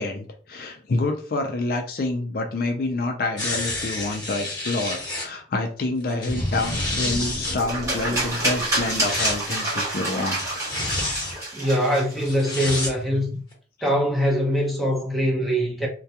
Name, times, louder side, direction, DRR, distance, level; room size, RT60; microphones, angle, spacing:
voice 1, 0.0-10.6, left 2 dB, 55° left, 0.4 m, -27 dB
sound 1, 3.4-5.3 6.1-7.6 8.7-9.4 10.3-11.3 12.2-12.9 13.5-13.6, left 2 dB, 25° left, 1.0 m, -29 dB
sound 2, 6.3-9.8 10.3-10.5, equal, 55° right, 0.6 m, -33 dB
sound 3, 7.6-12.8, right 1 dB, 20° right, 1.0 m, -28 dB
voice 2, 11.5-13.4 13.8-15.9, equal, ahead, 0.7 m, -23 dB
2.2 x 2.2 x 2.7 m
head